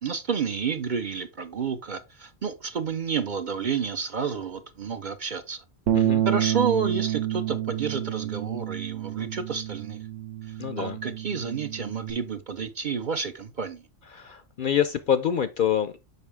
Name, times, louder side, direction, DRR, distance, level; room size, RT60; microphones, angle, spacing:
voice 1, 0.0-5.6 6.0-10.0 10.4-13.9, right 6 dB, 50° right, 0.7 m, -30 dB
Bass guitar, 5.9-12.1, right 12 dB, 85° right, 1.3 m, -28 dB
voice 2, 10.6-11.0 14.1-16.0, left 8 dB, 55° left, 0.6 m, -26 dB
6.8 x 5.4 x 3.5 m
omnidirectional pair, 1.2 m